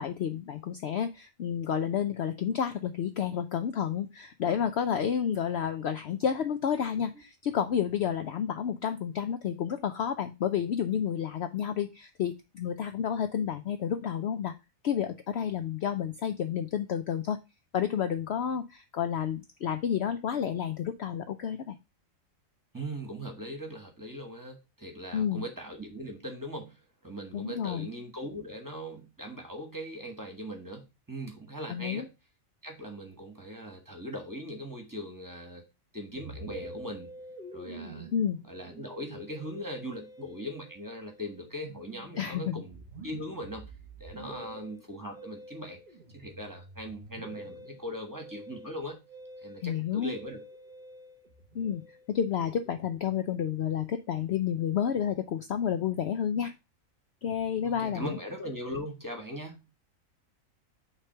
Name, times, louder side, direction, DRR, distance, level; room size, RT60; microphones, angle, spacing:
voice 1, 0.0-14.5 14.8-17.4 17.7-21.7 25.1-25.4 27.3-27.9 31.7-32.1 38.1-38.4 42.2-42.6 49.6-50.1 51.5-51.8 52.1-56.5 57.2-58.2, left 8 dB, 65° left, 9 dB, 0.7 m, -30 dB
voice 2, 22.7-32.1 32.6-35.6 35.9-37.1 37.5-38.1 38.5-43.6 44.0-45.8 46.1-49.0 49.4-50.4 57.6-59.6, equal, 15° right, 3 dB, 1.4 m, -40 dB
Musical instrument, 36.2-53.8, right 1 dB, 35° right, 1.1 m, -48 dB
6.0 x 3.3 x 5.6 m, 0.25 s
omnidirectional pair, 1.4 m